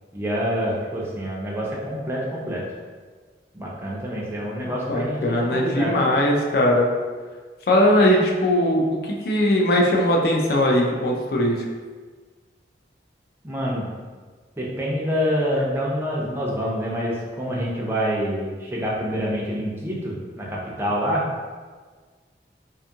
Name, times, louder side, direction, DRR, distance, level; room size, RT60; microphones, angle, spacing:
voice 1, 0.1-2.6 3.5-6.0 13.4-13.9 14.6-21.2, equal, 15° right, -5 dB, 0.4 m, -26 dB
voice 2, 4.9-6.9 7.7-11.6, left 1 dB, 55° left, -1 dB, 0.4 m, -20 dB
2.6 x 2.4 x 2.7 m, 1.5 s
head